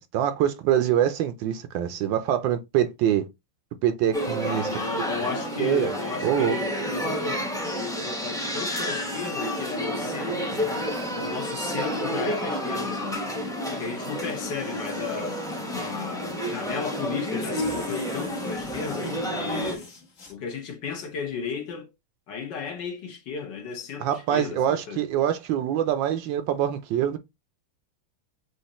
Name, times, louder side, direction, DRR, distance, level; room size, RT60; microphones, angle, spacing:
voice 1, 0.1-3.3 3.8-4.7 5.6-5.9 6.2-6.6 24.0-27.2, right 10 dB, 75° right, 1.3 m, -24 dB
sound 1, 4.1-19.8, equal, 5° left, 0.4 m, -30 dB
voice 2, 4.4-10.6 11.1-13.3 13.7-19.9 20.3-21.9 22.3-25.0, left 6 dB, 65° left, 1.6 m, -34 dB
sound 2, 14.1-16.3 17.0-17.1 17.4-20.3, left 3 dB, 45° left, 1.3 m, -44 dB
6.3 x 2.5 x 2.9 m
omnidirectional pair, 2.2 m